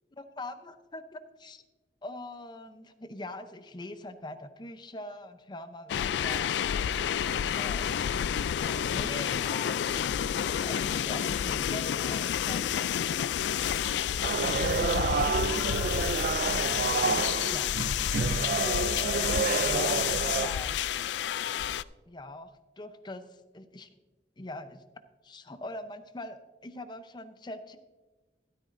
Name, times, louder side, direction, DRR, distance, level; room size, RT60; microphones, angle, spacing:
voice 1, 0.2-1.6 2.0-6.6 7.2-8.0 8.3-10.1 10.4-12.9 14.0-15.3 16.8-17.7 18.5-20.8 22.1-22.5 22.8-23.9 24.4-24.8 25.2-27.8, left 2 dB, 25° left, 10 dB, 0.6 m, -43 dB
sound 1, 5.9-21.8, left 9 dB, 75° left, 0.3 m, -29 dB
sound 2, 14.2-20.5, right 5 dB, 50° right, 0.3 m, -29 dB
13.0 x 13.0 x 2.6 m, 1.2 s
head